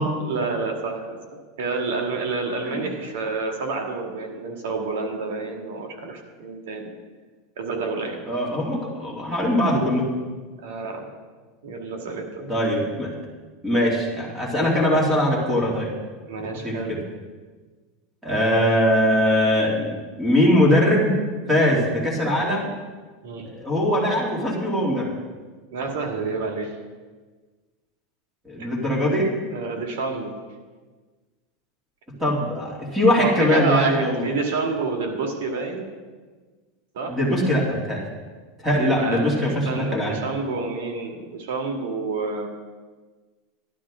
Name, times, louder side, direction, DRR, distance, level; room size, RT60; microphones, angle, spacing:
voice 1, 0.2-6.9 7.6-8.2 10.6-11.1 11.6-12.5 16.2-16.9 23.2-23.5 25.7-26.7 28.6-28.7 29.5-30.4 33.2-35.9 36.9-37.2 38.8-42.5, right 4 dB, 85° right, 2 dB, 2.2 m, -28 dB
voice 2, 8.3-10.1 12.5-13.1 13.6-15.9 16.6-17.0 18.2-21.2 21.5-22.7 23.5-25.1 28.4-29.3 32.2-34.2 37.1-38.0 38.6-40.1, equal, 10° right, -3 dB, 2.7 m, -21 dB
13.5 x 11.5 x 3.8 m, 1.4 s
supercardioid pair, 160°, 0 cm